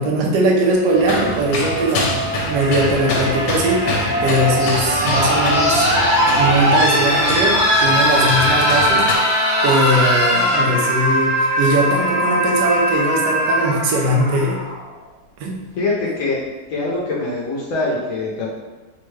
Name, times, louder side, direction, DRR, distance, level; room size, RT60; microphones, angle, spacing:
voice 1, 0.0-9.3 9.6-14.6 15.4-15.6, right 1 dB, 75° right, 0 dB, 1.2 m, -20 dB
sound 1, 0.8-14.8 16.0-16.1, equal, 40° left, 1.2 m, -19 dB
sound 2, 1.0-9.2, left 2 dB, 80° left, 1.2 m, -26 dB
voice 2, 15.8-16.4 16.7-18.5, left 3 dB, 65° left, -6 dB, 0.9 m, -23 dB
3.5 x 2.2 x 3.1 m, 1.2 s
omnidirectional pair, 1.9 m